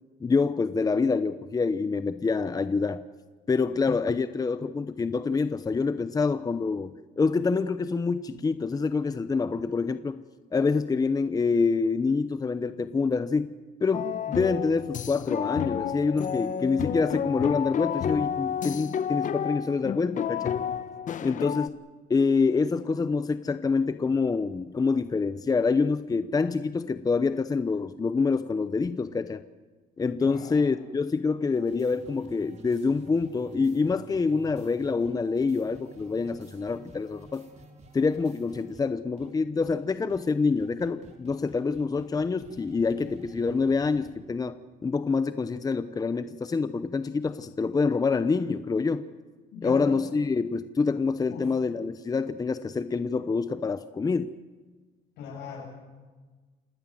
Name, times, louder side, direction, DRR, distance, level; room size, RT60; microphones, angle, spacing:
voice 1, 0.2-3.0 3.5-10.2 10.5-13.5 13.8-20.6 21.2-21.8 22.1-29.4 30.0-37.4 37.9-49.0 49.6-54.3, left 4 dB, 20° left, 12 dB, 0.8 m, -26 dB
sound 1, 13.9-21.7, left 9 dB, 50° left, 1.0 m, -31 dB
voice 2, 30.2-30.6 49.5-49.9 51.3-51.4 55.2-55.7, left 6 dB, 85° left, -2 dB, 7.8 m, -38 dB
sound 2, 31.5-38.9 39.2-39.3 39.6-39.8 40.1-40.2 40.6-44.1, right 2 dB, 40° right, 4.2 m, -51 dB
27.5 x 18.0 x 7.8 m, 1.3 s
cardioid pair, 110°, 17 cm